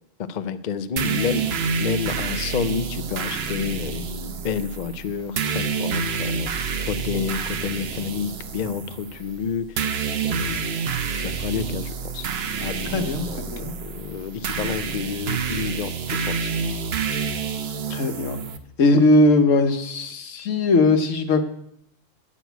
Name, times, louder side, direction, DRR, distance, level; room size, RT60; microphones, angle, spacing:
voice 1, 0.3-9.9 10.3-10.8 11.1-12.3 12.6-12.9 13.2-13.4 13.8-16.5, left 7 dB, 55° left, 12 dB, 0.5 m, -30 dB
sound 1, 1.0-18.6, right 5 dB, 55° right, 1.0 m, -28 dB
voice 2, 12.9-13.7 17.9-18.4 18.8-21.4, left 2 dB, 75° left, 8 dB, 1.4 m, -19 dB
8.5 x 6.2 x 8.0 m, 0.73 s
omnidirectional pair, 1.3 m